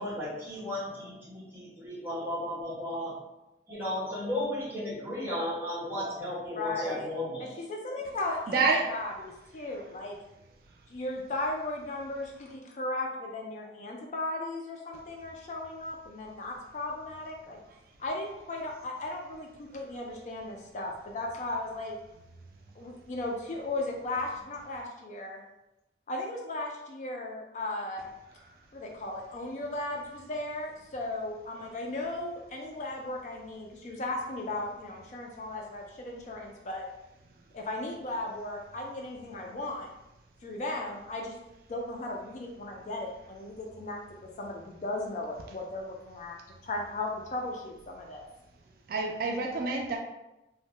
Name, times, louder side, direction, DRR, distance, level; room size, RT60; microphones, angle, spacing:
voice 1, 0.0-3.1 3.7-7.5, left 1 dB, 10° right, -9 dB, 1.0 m, -34 dB
voice 2, 6.6-7.1 7.6-10.2 10.9-17.6 18.0-21.9 22.8-25.4 26.1-28.1 28.7-36.9 37.5-39.9 40.4-41.4 41.7-46.4 46.6-48.3, left 2 dB, 40° left, 0 dB, 0.3 m, -36 dB
voice 3, 8.2-8.9 9.5-9.9 28.4-28.5 39.2-39.3 48.9-50.0, right 4 dB, 55° right, 1 dB, 0.3 m, -29 dB
2.6 x 2.1 x 3.1 m, 0.94 s
head